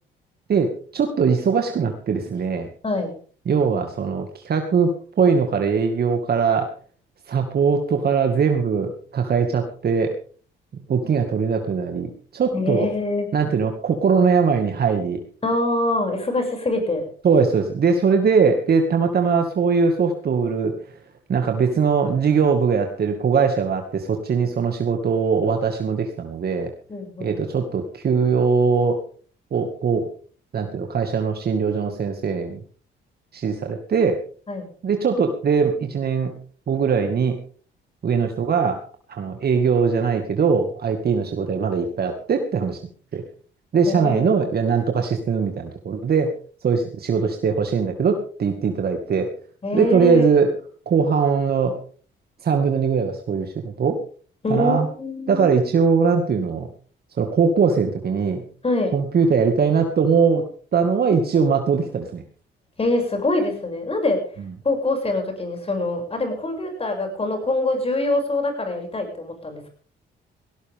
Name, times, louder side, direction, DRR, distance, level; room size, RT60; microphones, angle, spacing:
voice 1, 0.5-2.7 3.5-4.9 5.2-6.7 7.3-10.2 10.9-12.9 13.3-15.2 17.2-20.7 21.3-26.7 27.2-29.0 29.5-30.1 30.5-32.6 33.3-34.2 34.8-36.3 36.7-37.4 38.0-38.8 39.1-42.8 43.1-43.2 43.7-46.3 46.6-49.3 49.7-50.5 50.9-51.8 52.4-54.0 54.5-54.9 55.3-56.7 57.2-58.4 58.9-60.5 60.7-62.2, right 5 dB, 50° right, 4 dB, 2.2 m, -21 dB
voice 2, 12.5-13.3 15.4-17.1 26.9-27.4 34.5-34.7 43.9-44.3 49.6-50.3 54.4-55.5 58.6-58.9 62.8-64.2 64.6-69.7, left 2 dB, 30° left, 4 dB, 7.2 m, -24 dB
18.5 x 17.5 x 3.7 m, 0.43 s
cardioid pair, 90°, 20 cm